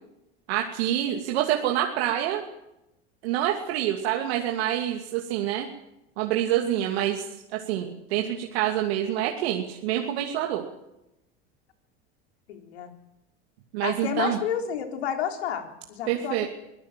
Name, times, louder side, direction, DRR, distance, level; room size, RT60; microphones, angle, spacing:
voice 1, 0.5-2.4 3.2-5.7 6.2-7.2 7.5-10.6 13.7-14.4 16.1-16.5, right 11 dB, 80° right, 1 dB, 2.7 m, -26 dB
voice 2, 12.5-12.9 13.8-16.5, left 8 dB, 85° left, 4 dB, 4.2 m, -31 dB
24.0 x 17.5 x 7.6 m, 0.89 s
supercardioid pair, 100°, 31 cm